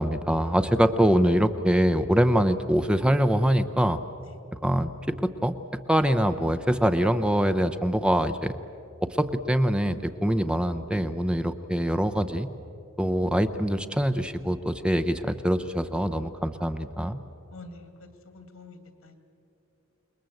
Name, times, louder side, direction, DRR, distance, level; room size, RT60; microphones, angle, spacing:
voice 1, 0.0-4.0 4.5-5.5 5.9-8.5 9.0-12.5 13.0-17.2, equal, 5° right, 9 dB, 0.6 m, -24 dB
voice 2, 17.5-17.9 18.2-19.1, left 3 dB, 80° left, 8 dB, 2.6 m, -46 dB
28.0 x 21.0 x 7.8 m, 2.6 s
head